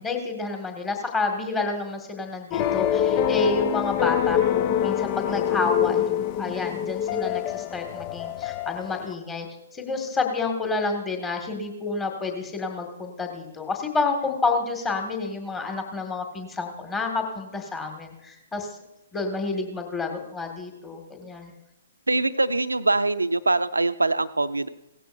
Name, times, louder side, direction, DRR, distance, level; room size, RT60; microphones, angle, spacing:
voice 1, 0.0-9.5 9.7-18.7 19.1-21.5, left 3 dB, 15° left, 3 dB, 1.9 m, -29 dB
sound 1, 2.5-9.1, left 10 dB, 30° left, 0.5 m, -25 dB
voice 2, 22.1-24.7, right 2 dB, 80° right, 13 dB, 0.6 m, -23 dB
17.5 x 14.5 x 2.7 m, 0.94 s
figure-of-eight pair, 120°, 0 cm